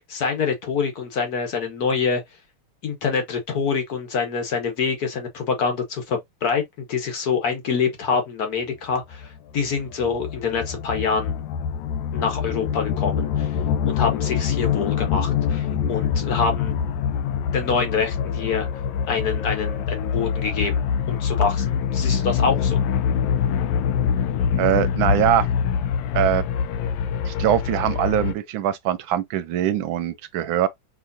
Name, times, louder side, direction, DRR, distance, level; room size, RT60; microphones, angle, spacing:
voice 1, 0.1-2.2 2.8-11.4 12.1-13.6 13.8-16.8 17.5-18.7 19.1-20.8 21.1-22.8, left 5 dB, 55° left, 1.3 m, -26 dB
sound 1, 9.1-28.3, left 7 dB, 75° left, 1.2 m, -24 dB
voice 2, 24.6-25.5 26.1-26.4 27.2-30.7, right 11 dB, 75° right, 1.3 m, -22 dB
5.0 x 3.0 x 2.6 m
omnidirectional pair, 2.3 m